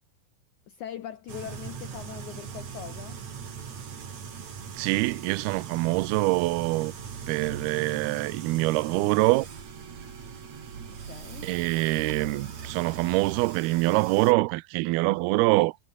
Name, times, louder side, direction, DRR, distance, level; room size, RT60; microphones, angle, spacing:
voice 1, 0.7-3.2 10.9-11.5, left 10 dB, 75° left, 1.8 m, -41 dB
sound 1, 1.3-14.3, right 6 dB, 45° right, 4.0 m, -40 dB
voice 2, 4.8-6.9 7.3-9.5 11.4-15.8, right 22 dB, 80° right, 2.4 m, -25 dB
omnidirectional pair, 4.9 m